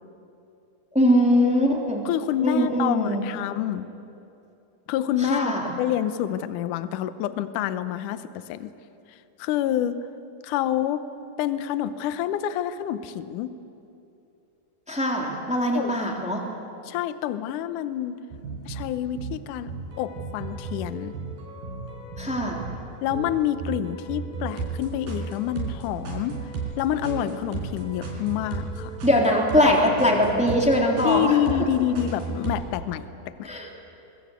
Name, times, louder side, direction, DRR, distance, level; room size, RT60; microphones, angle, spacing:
voice 1, 0.9-2.0 2.4-3.2 5.2-5.7 14.9-16.4 22.2-22.6 29.0-31.4 33.4-33.7, equal, ahead, 0 dB, 2.4 m, -21 dB
voice 2, 2.1-3.9 4.9-5.5 5.8-8.7 9.4-10.0 10.4-11.0 11.4-13.6 15.8-16.0 16.9-18.2 18.7-21.1 23.0-26.4 26.8-29.0 31.0-33.5, left 11 dB, 70° left, 12 dB, 2.1 m, -27 dB
sound 1, 18.3-32.6, right 4 dB, 75° right, 5.4 m, -35 dB
23.0 x 21.5 x 8.3 m, 2.8 s
omnidirectional pair, 4.2 m